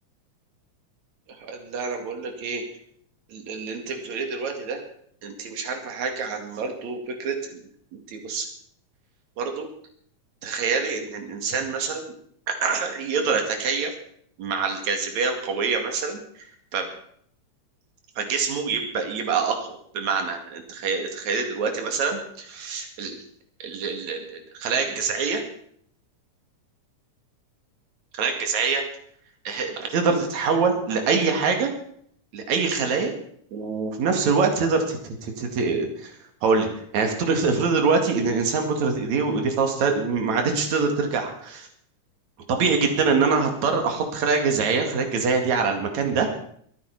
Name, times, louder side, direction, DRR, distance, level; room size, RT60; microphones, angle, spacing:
voice 1, 1.4-2.6 3.3-4.8 5.2-7.6 7.9-8.5 9.4-9.7 10.4-12.1 12.5-13.9 14.4-16.5 16.7-16.9 18.2-23.2 23.6-25.4 28.1-28.8 29.5-31.7 32.3-33.1 33.5-36.1 36.4-41.7 42.5-46.3, right 4 dB, 65° right, 4 dB, 3.4 m, -25 dB
23.0 x 9.4 x 4.9 m, 0.66 s
omnidirectional pair, 3.6 m